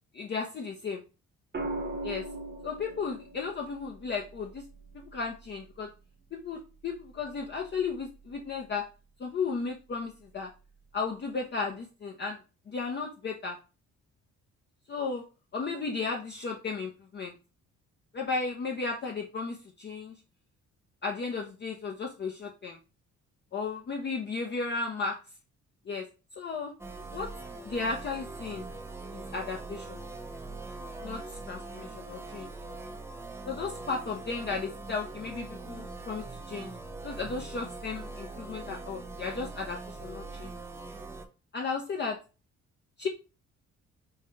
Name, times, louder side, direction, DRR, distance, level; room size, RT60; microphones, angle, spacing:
voice 1, 0.1-1.0 2.0-2.3 2.6-4.7 4.9-5.9 6.3-8.9 9.2-10.5 10.9-12.4 12.7-13.6 14.9-15.2 15.5-17.3 18.1-20.1 21.0-22.8 23.5-25.2 25.9-26.1 26.4-26.7 27.1-27.3 27.6-28.6 29.1-30.0 31.0-32.5 33.4-36.7 37.0-40.5 41.5-42.2 43.0-43.1, left 4 dB, 35° left, 1 dB, 0.6 m, -34 dB
sound 1, 1.5-5.7 7.4-7.8, right 2 dB, 35° right, 0.9 m, -40 dB
sound 2, 26.8-41.3, right 3 dB, 10° right, 0.5 m, -42 dB
4.7 x 2.3 x 2.9 m, 0.32 s
cardioid pair, 90°, 30 cm